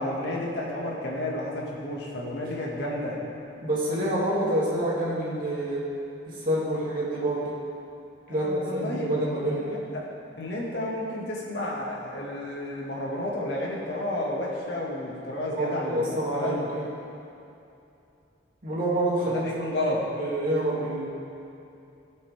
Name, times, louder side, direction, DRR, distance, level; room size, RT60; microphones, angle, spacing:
voice 1, 0.0-3.2 8.3-9.0 9.6-10.0 10.4-16.7 19.2-20.0, left 1 dB, 70° left, -4 dB, 2.2 m, -31 dB
voice 2, 3.6-5.9 6.3-7.5 8.3-9.9 15.5-16.8 18.6-19.5 19.9-21.1, right 1 dB, 50° right, -7 dB, 2.8 m, -27 dB
18.0 x 6.9 x 3.7 m, 2.7 s
head